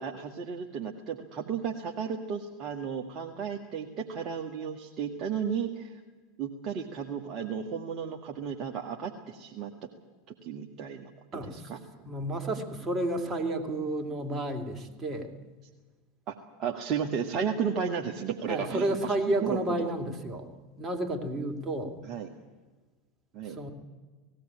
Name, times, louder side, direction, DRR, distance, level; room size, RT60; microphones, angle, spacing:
voice 1, 0.0-6.0 6.4-9.7 10.4-11.8 16.3-19.9 22.0-22.3 23.3-23.6, right 7 dB, 40° right, 2 dB, 1.6 m, -34 dB
voice 2, 11.3-11.7 12.0-15.3 18.5-20.5 20.8-22.0 23.4-23.7, right 1 dB, 25° right, 5 dB, 2.9 m, -31 dB
18.5 x 16.0 x 9.9 m, 1.3 s
figure-of-eight pair, 80°, 0 cm